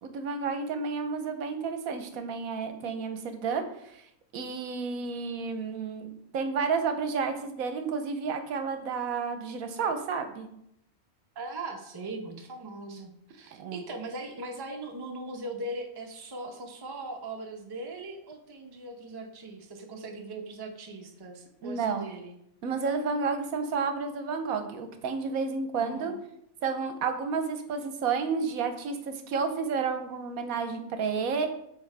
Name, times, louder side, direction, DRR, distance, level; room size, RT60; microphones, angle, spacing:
voice 1, 0.0-4.0 4.3-10.5 13.5-13.8 21.6-22.1 22.6-26.1 26.6-31.5, right 5 dB, 75° right, 8 dB, 1.1 m, -31 dB
voice 2, 11.4-22.3 25.8-26.2, right 2 dB, 25° right, 2 dB, 0.6 m, -40 dB
8.4 x 3.9 x 3.3 m, 0.75 s
omnidirectional pair, 1.5 m